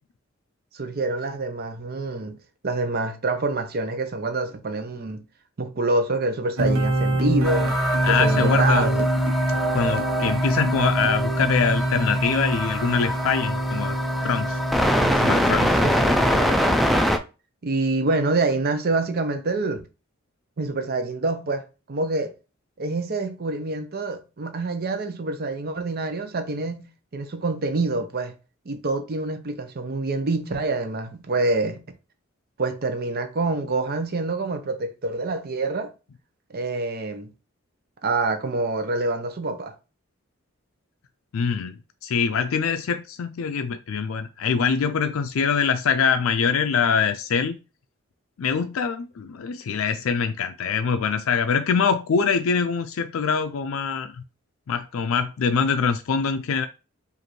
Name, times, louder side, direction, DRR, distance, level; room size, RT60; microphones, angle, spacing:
voice 1, 0.7-2.4 2.6-5.2 5.6-7.8 8.1-9.1 15.8-16.9 17.6-19.8 20.6-22.3 22.8-26.9 27.1-28.3 28.7-31.8 32.6-35.9 36.5-37.3 38.0-39.7, right 3 dB, 50° right, 0.7 m, -26 dB
sound 1, 6.6-16.5, right 1 dB, 85° right, 1.0 m, -25 dB
sound 2, 7.4-17.2, equal, ahead, 0.4 m, -24 dB
voice 2, 8.0-9.0 9.7-14.0 14.2-15.8 41.3-47.6 48.4-54.2 54.7-56.7, left 6 dB, 70° left, 0.4 m, -24 dB
5.0 x 2.6 x 3.0 m
head